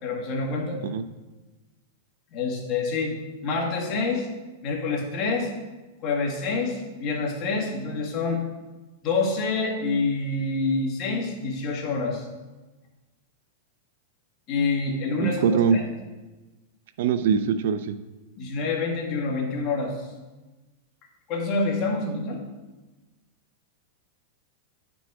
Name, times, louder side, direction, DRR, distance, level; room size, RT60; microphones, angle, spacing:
voice 1, 0.0-0.8 2.3-3.1 3.4-4.3 4.6-5.5 6.0-8.4 9.0-12.3 14.5-15.8 18.4-20.0 21.3-22.4, left 3 dB, 30° left, -1 dB, 1.8 m, -27 dB
voice 2, 15.2-15.8 17.0-17.9, right 6 dB, 65° right, 11 dB, 0.5 m, -22 dB
9.7 x 6.1 x 4.8 m, 1.2 s
supercardioid pair, 160°, 0 cm